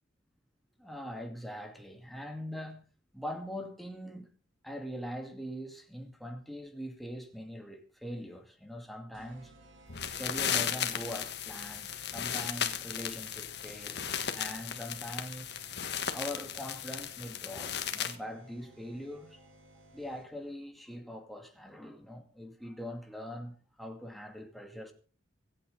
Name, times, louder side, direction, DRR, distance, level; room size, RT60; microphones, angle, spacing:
voice 1, 0.8-4.3 4.6-9.5 10.2-15.5 16.1-19.5 19.9-24.9, equal, ahead, 2.5 m, -42 dB
sound 1, 9.1-20.5, right 1 dB, 90° right, 2.9 m, -58 dB
sound 2, 9.9-18.2, left 9 dB, 60° left, 1.6 m, -35 dB
25.5 x 8.8 x 4.0 m
head